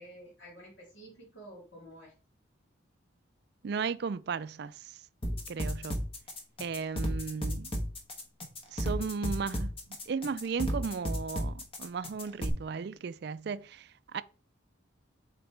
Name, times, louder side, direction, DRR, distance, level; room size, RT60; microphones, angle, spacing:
voice 1, 0.0-2.1, right 1 dB, 65° left, 2.8 m, -50 dB
voice 2, 3.6-4.9 5.5-6.1 6.6-7.7 8.7-9.7 10.1-14.2, right 5 dB, 55° right, 0.4 m, -35 dB
sound 1, 5.2-12.5, equal, 30° left, 1.2 m, -33 dB
7.8 x 4.1 x 3.3 m
head